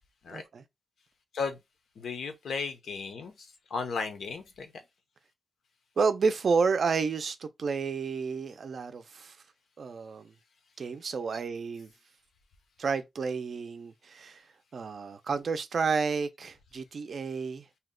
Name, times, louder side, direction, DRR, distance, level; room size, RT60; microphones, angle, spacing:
voice 1, 0.3-0.6 6.0-9.4 9.8-10.3 10.8-11.9 12.8-14.4 14.7-17.6, right 5 dB, 50° right, 0.4 m, -30 dB
voice 2, 2.0-4.7, left 5 dB, 80° left, 0.7 m, -35 dB
2.8 x 2.1 x 3.6 m
wide cardioid pair, 165°, 0 cm